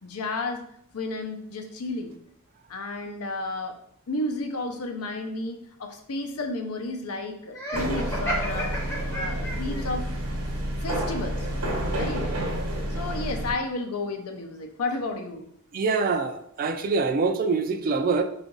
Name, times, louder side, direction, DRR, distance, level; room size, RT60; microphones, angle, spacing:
voice 1, 0.0-0.6 0.9-2.1 2.7-3.7 4.1-8.7 9.1-10.2 10.8-11.5 11.9-12.3 12.5-15.5, left 2 dB, 80° left, 0.6 m, -32 dB
Laughter, 7.5-9.8, equal, 10° left, 0.7 m, -31 dB
sound 1, 7.7-13.5, right 1 dB, 85° right, 0.9 m, -29 dB
voice 2, 15.7-18.2, right 4 dB, 40° right, 0.3 m, -25 dB
3.8 x 2.5 x 3.7 m
head